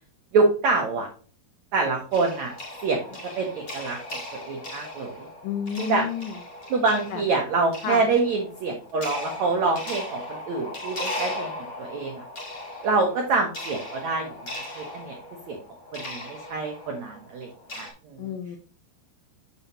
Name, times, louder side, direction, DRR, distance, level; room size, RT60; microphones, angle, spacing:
voice 1, 0.3-1.1 1.7-2.5 2.8-4.0 4.3-5.3 5.8-6.1 6.7-12.2 12.8-15.2 15.5-15.6 15.9-18.3, right 3 dB, 85° right, 1 dB, 1.6 m, -26 dB
sound 1, 2.1-17.9, left 1 dB, 50° left, 1.0 m, -38 dB
voice 2, 5.4-6.4 7.1-7.2 7.8-8.0 18.2-18.6, left 8 dB, 85° left, 5 dB, 1.9 m, -30 dB
7.0 x 6.9 x 2.8 m, 0.39 s
omnidirectional pair, 5.0 m